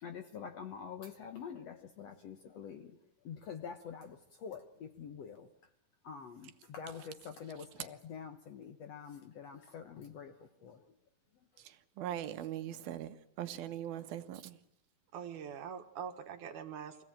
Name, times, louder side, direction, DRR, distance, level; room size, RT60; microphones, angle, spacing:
voice 1, 0.0-3.0 3.2-5.5 6.0-10.9, left 7 dB, 60° left, 1.8 m, -46 dB
voice 2, 11.6-14.6, right 11 dB, 85° right, 3.0 m, -41 dB
voice 3, 15.1-17.0, right 8 dB, 65° right, 2.7 m, -43 dB
24.0 x 16.5 x 8.9 m
omnidirectional pair, 4.2 m